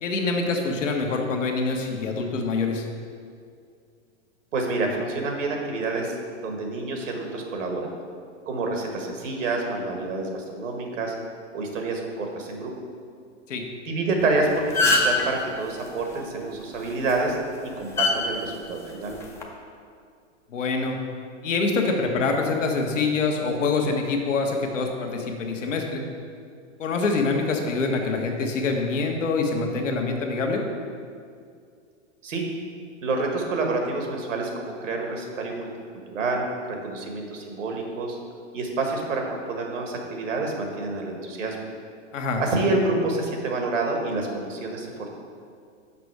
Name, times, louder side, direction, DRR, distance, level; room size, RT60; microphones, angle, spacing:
voice 1, 0.0-2.8 13.5-13.6 20.5-21.0 21.4-26.0 26.8-30.6 42.1-42.4, left 3 dB, 85° left, 2 dB, 1.2 m, -25 dB
voice 2, 4.5-6.2 6.4-7.9 8.5-11.1 11.5-12.7 13.8-17.4 17.8-19.2 32.2-32.5 33.0-35.7 36.1-38.2 38.5-39.2 39.5-41.6 42.4-45.2, right 3 dB, 85° right, 2 dB, 1.5 m, -28 dB
sound 1, 14.2-14.3 14.6-15.2 16.9-17.1 18.0-18.1 19.2-19.4, left 3 dB, 10° left, 0.3 m, -21 dB
5.9 x 5.4 x 4.7 m, 2.2 s
hypercardioid pair, 125°, 37 cm